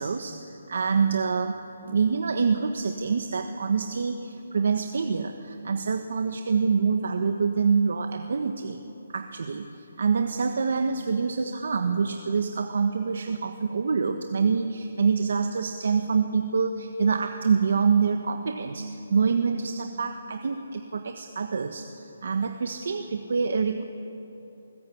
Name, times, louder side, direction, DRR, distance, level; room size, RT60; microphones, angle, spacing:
voice 1, 0.0-8.8 9.1-9.7 10.0-23.8, right 5 dB, 55° right, 6 dB, 1.2 m, -26 dB
20.5 x 19.5 x 8.6 m, 2.9 s
hypercardioid pair, 175°, 0 cm